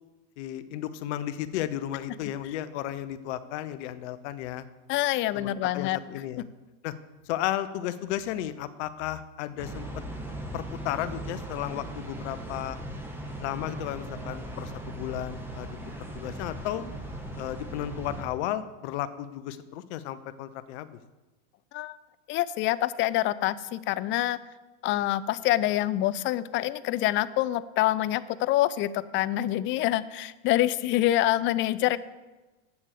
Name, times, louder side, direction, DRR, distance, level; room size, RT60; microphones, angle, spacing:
voice 1, 0.4-4.6 5.3-6.4 6.8-6.9 7.3-9.8 10.5-12.8 13.4-15.7 16.1-16.8 17.4-20.9, left 12 dB, 65° left, 13 dB, 0.8 m, -34 dB
voice 2, 4.9-6.0 21.7-22.0 22.3-24.4 24.8-32.0, left 15 dB, 35° left, 17 dB, 0.4 m, -26 dB
sound 1, 9.6-18.2, right 1 dB, 5° right, 1.6 m, -38 dB
8.3 x 7.1 x 6.6 m, 1.2 s
hypercardioid pair, 110°, 37 cm